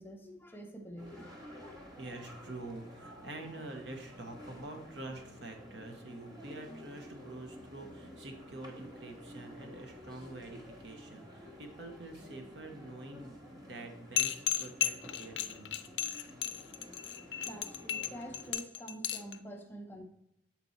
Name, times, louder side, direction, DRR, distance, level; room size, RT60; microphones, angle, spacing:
voice 1, 0.0-1.7 17.4-20.0, right 1 dB, 10° left, 3 dB, 0.7 m, -47 dB
sound 1, 1.0-18.5, left 1 dB, 20° right, 1.1 m, -51 dB
voice 2, 2.0-15.8, right 2 dB, 70° right, 4 dB, 1.0 m, -46 dB
sound 2, 14.2-19.3, left 11 dB, 80° left, 0.4 m, -34 dB
7.2 x 4.4 x 4.0 m, 0.78 s
head